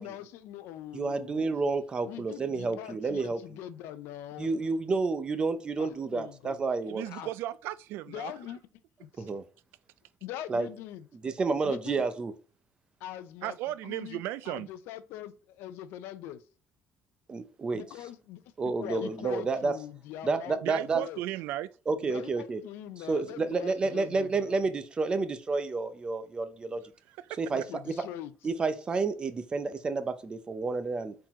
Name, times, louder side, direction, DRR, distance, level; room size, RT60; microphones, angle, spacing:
voice 1, 0.0-1.4 2.0-4.6 5.8-6.6 7.1-7.3 8.1-8.6 9.0-9.3 10.2-11.1 11.6-12.1 13.0-13.6 13.8-16.4 17.7-21.2 22.0-24.6 27.5-28.3, left 11 dB, 90° left, 0.5 m, -42 dB
voice 2, 0.9-3.6 4.4-7.0 9.2-9.4 10.5-10.7 11.2-12.3 17.3-17.8 18.6-19.7 20.2-21.0 21.9-22.6 23.1-26.8 27.4-27.9 28.4-31.1, right 4 dB, 25° right, 0.6 m, -30 dB
voice 3, 6.9-8.3 13.4-14.7 20.6-21.7 27.2-27.4, right 14 dB, 85° right, 0.3 m, -35 dB
4.6 x 3.8 x 3.0 m
cardioid pair, 150°, 4 cm